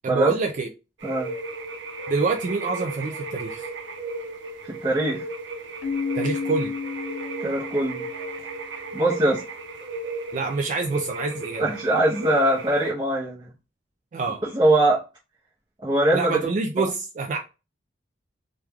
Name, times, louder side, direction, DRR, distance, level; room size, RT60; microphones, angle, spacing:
voice 1, 0.0-0.7 2.1-3.7 6.1-6.7 10.3-11.6 14.1-14.4 16.1-17.4, right 4 dB, 40° right, 0.3 m, -26 dB
sound 1, 1.0-12.9, right 3 dB, 80° right, 0.6 m, -35 dB
voice 2, 4.6-5.2 7.4-8.0 8.9-9.4 11.6-13.5 14.4-15.0 15.8-16.4, right 1 dB, 25° right, 0.7 m, -22 dB
Keyboard (musical), 5.8-8.5, left 5 dB, 65° left, 0.4 m, -31 dB
3.1 x 2.3 x 3.4 m
head